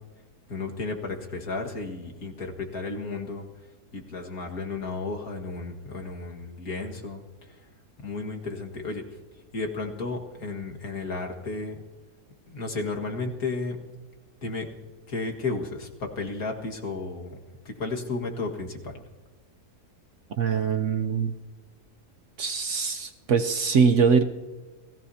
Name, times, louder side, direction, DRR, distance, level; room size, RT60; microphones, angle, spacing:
voice 1, 0.5-3.4 3.9-7.2 8.0-9.0 9.5-11.8 12.5-13.8 14.4-14.7 15.1-17.3 17.7-18.9, left 3 dB, 65° left, 1 dB, 2.3 m, -33 dB
voice 2, 20.4-21.3 22.4-24.2, right 6 dB, 60° right, 7 dB, 0.9 m, -23 dB
28.5 x 18.0 x 2.8 m, 1.3 s
omnidirectional pair, 1.7 m